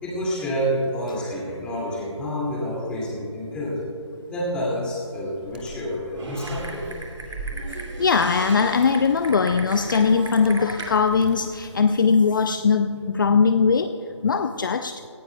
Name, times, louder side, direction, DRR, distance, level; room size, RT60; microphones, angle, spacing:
voice 1, 0.0-3.8 4.3-6.8, equal, 5° left, -6 dB, 2.4 m, -28 dB
Animal, 5.5-12.0, right 2 dB, 20° right, 0.9 m, -41 dB
Typing, 6.1-10.9, right 2 dB, 80° right, 2.4 m, -37 dB
voice 2, 7.7-13.9 14.2-15.0, left 5 dB, 45° left, 9 dB, 0.4 m, -20 dB
17.5 x 16.5 x 2.3 m, 2.9 s
figure-of-eight pair, 165°, 15 cm